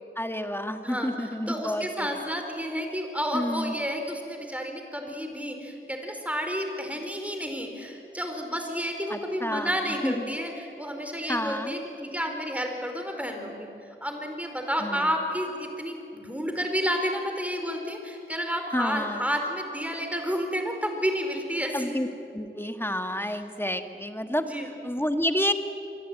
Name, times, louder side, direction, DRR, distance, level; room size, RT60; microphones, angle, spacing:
voice 1, 0.2-2.2 3.3-3.7 9.1-9.7 10.0-10.3 11.3-11.7 14.8-15.1 18.7-19.3 21.7-22.1 22.3-24.5 24.8-25.5, left 1 dB, 10° left, 7 dB, 1.8 m, -29 dB
voice 2, 0.8-13.7 14.0-22.0 23.3-23.4 24.4-24.7, equal, 5° right, 4 dB, 4.7 m, -31 dB
26.0 x 23.0 x 9.3 m, 2.8 s
wide cardioid pair, 60°, 21 cm